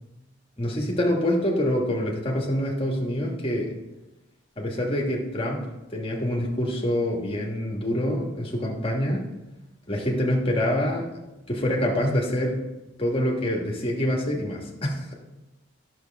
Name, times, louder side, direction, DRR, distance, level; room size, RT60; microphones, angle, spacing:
voice 1, 0.6-3.7 4.6-9.2 9.9-11.1 11.5-12.6 13.0-15.1, equal, 25° left, -1 dB, 1.3 m, -26 dB
10.5 x 6.5 x 3.4 m, 0.99 s
head